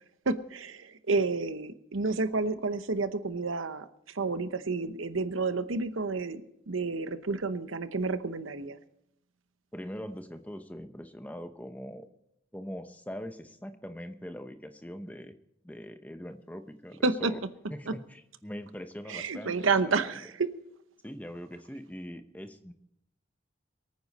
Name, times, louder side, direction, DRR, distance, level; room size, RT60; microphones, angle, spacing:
voice 1, 0.3-8.8 17.0-17.3 17.9-18.0 19.1-20.5, right 4 dB, 80° right, 11 dB, 0.9 m, -30 dB
voice 2, 9.7-12.1 12.5-15.4 15.6-17.4 17.7-20.1 21.0-22.7, equal, 10° left, 8 dB, 0.8 m, -42 dB
24.0 x 9.5 x 4.2 m, 0.79 s
head